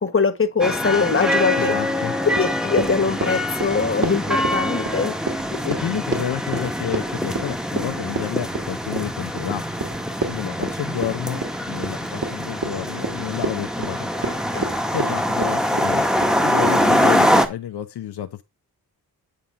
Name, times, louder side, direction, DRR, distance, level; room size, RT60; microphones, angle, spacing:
voice 1, 0.0-1.8 2.2-5.1 14.2-14.7, left 5 dB, 30° left, 1.4 m, -22 dB
sound 1, 0.6-17.5, equal, ahead, 1.3 m, -24 dB
voice 2, 1.5-2.1 5.5-9.6 10.3-11.4 11.7-14.1 14.9-16.1 16.4-18.4, left 10 dB, 75° left, 0.8 m, -30 dB
Run, 2.3-16.4, right 3 dB, 50° right, 2.5 m, -30 dB
8.8 x 3.7 x 5.7 m
cardioid pair, 55°, 40 cm